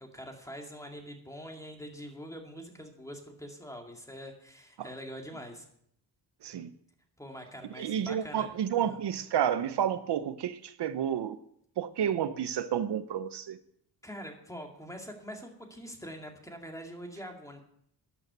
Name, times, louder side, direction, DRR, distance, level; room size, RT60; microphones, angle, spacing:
voice 1, 0.0-5.7 7.2-8.5 8.8-9.0 14.0-17.6, equal, 5° left, 3 dB, 2.2 m, -44 dB
voice 2, 7.8-11.4 11.8-13.6, right 9 dB, 70° right, 12 dB, 0.8 m, -30 dB
12.0 x 9.8 x 6.7 m, 0.69 s
wide cardioid pair, 135°, 42 cm